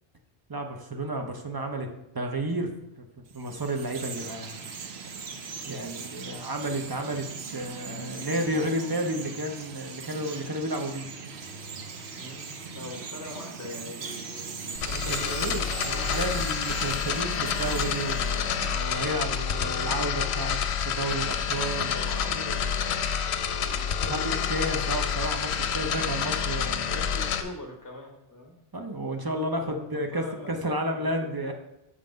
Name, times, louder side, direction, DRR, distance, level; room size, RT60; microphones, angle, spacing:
voice 1, 0.5-1.9 2.1-2.7 3.0-4.6 5.6-11.1 14.9-20.6 20.8-21.9 24.0-26.9 28.7-31.5, right 1 dB, 25° right, 4 dB, 0.6 m, -32 dB
Chirp tweet, 3.3-18.9, right 5 dB, 70° right, 1.0 m, -39 dB
voice 2, 5.8-6.4 12.2-16.6 21.5-23.0 23.5-24.3 26.9-28.6 29.6-31.5, left 2 dB, 15° left, 2 dB, 1.1 m, -43 dB
sound 1, 14.7-27.4, left 7 dB, 70° left, 0.9 m, -28 dB
6.6 x 5.7 x 5.2 m, 0.87 s
omnidirectional pair, 1.2 m